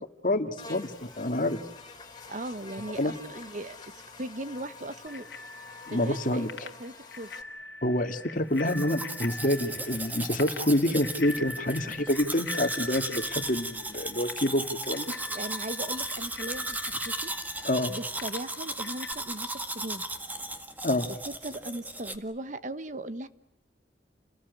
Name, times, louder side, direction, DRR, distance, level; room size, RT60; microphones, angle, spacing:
voice 1, 0.2-1.6 3.0-3.1 5.9-6.5 7.8-15.1 17.6-17.9 20.8-21.1, left 1 dB, 50° left, 7 dB, 2.1 m, -27 dB
Buzz, 0.6-7.4, left 4 dB, 25° left, 3.6 m, -47 dB
voice 2, 2.3-3.8 4.2-5.3 5.9-6.5 6.8-7.3 15.3-20.0 21.3-23.3, right 1 dB, 45° right, 12 dB, 1.1 m, -38 dB
Bicycle bell, 5.1-19.1, left 3 dB, 85° left, 2.3 m, -43 dB
Domestic sounds home sounds, 8.5-22.2, right 1 dB, 10° right, 1.8 m, -36 dB
29.5 x 19.0 x 9.4 m, 0.90 s
head